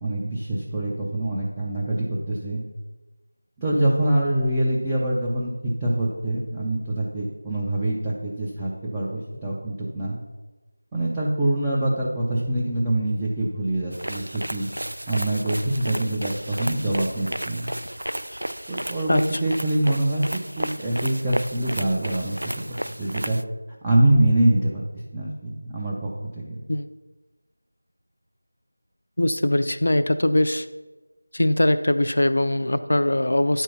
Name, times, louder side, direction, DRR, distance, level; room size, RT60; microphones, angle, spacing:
voice 1, 0.0-2.6 3.6-10.1 10.9-14.7 15.1-17.7 18.7-22.4 23.0-23.4 23.8-24.8 25.1-26.6, right 1 dB, 10° right, -6 dB, 0.5 m, -24 dB
sound 1, 13.9-23.4, equal, 80° right, 0.4 m, -33 dB
voice 2, 29.2-30.7 31.3-33.6, left 1 dB, 55° left, 10 dB, 0.5 m, -21 dB
10.0 x 4.5 x 5.5 m, 1.2 s
figure-of-eight pair, 170°, 0 cm